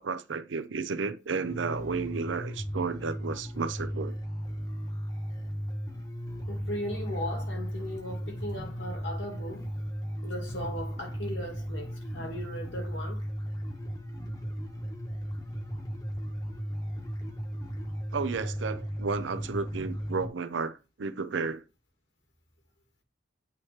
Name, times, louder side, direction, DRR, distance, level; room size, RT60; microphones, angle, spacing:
voice 1, 0.0-4.1 18.1-21.6, right 4 dB, 85° right, 0.6 m, -32 dB
sound 1, 1.4-20.3, equal, 20° left, 1.1 m, -36 dB
voice 2, 6.5-9.7 10.2-13.2, equal, 75° left, 2.3 m, -37 dB
8.4 x 3.2 x 4.3 m
head